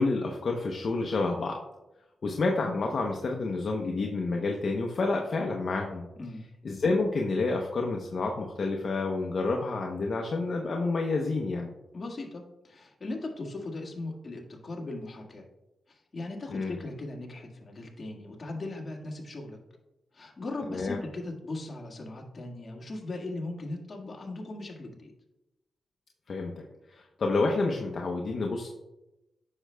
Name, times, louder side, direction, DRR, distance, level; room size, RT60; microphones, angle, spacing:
voice 1, 0.0-1.6 2.2-6.1 6.6-11.7 16.5-16.7 20.7-21.0 26.3-26.5 26.9-28.7, left 3 dB, 60° left, 1 dB, 0.8 m, -29 dB
voice 2, 11.9-15.4 15.9-19.6 20.1-25.1, left 2 dB, 40° left, -1 dB, 1.7 m, -38 dB
9.7 x 6.4 x 2.3 m, 0.97 s
cardioid pair, 70°, 0 cm